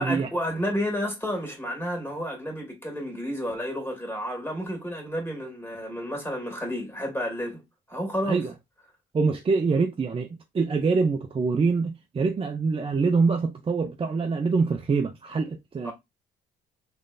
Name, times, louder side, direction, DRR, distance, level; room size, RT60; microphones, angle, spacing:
voice 1, 0.0-7.6 7.9-8.4 15.8-15.9, equal, 10° left, 2.3 m, -31 dB
voice 2, 9.1-15.9, right 4 dB, 30° right, 0.5 m, -25 dB
3.7 x 3.2 x 2.5 m
cardioid pair, 90°, 20 cm